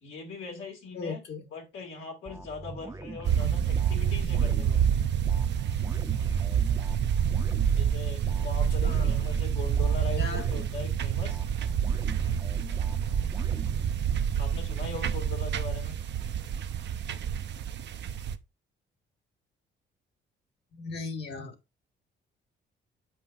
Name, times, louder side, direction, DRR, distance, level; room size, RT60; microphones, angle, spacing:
voice 1, 0.0-1.2 1.5-4.8 7.6-11.4 14.4-16.0, left 4 dB, 85° left, 2.3 m, -40 dB
voice 2, 0.9-1.5 3.4-3.6 8.8-9.2 10.2-10.4 10.8-10.9 20.7-21.6, left 4 dB, 60° left, 1.6 m, -37 dB
sound 1, 2.3-14.5, right 3 dB, 15° right, 0.6 m, -42 dB
sound 2, 3.3-18.3, right 8 dB, 60° right, 0.6 m, -28 dB
7.5 x 5.4 x 2.5 m
cardioid pair, 90°, 20 cm